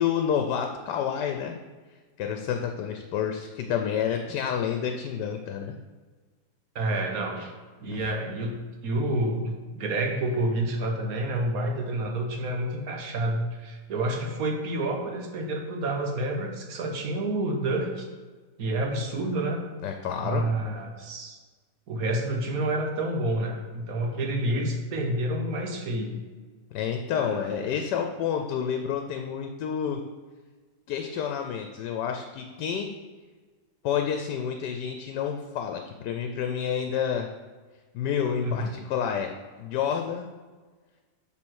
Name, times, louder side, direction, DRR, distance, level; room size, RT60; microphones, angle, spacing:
voice 1, 0.0-1.6 2.2-5.7 7.9-8.0 19.8-20.4 26.7-30.0 30.9-32.9 33.8-37.3 37.9-39.3 39.6-40.3, left 8 dB, 85° left, 4 dB, 1.2 m, -29 dB
voice 2, 6.7-7.5 7.8-8.5 8.8-18.1 18.6-19.6 20.2-21.4 21.9-26.2 27.1-27.6 38.4-38.7, right 1 dB, 60° right, 2 dB, 1.4 m, -29 dB
7.5 x 3.8 x 6.3 m, 1.4 s
omnidirectional pair, 1.8 m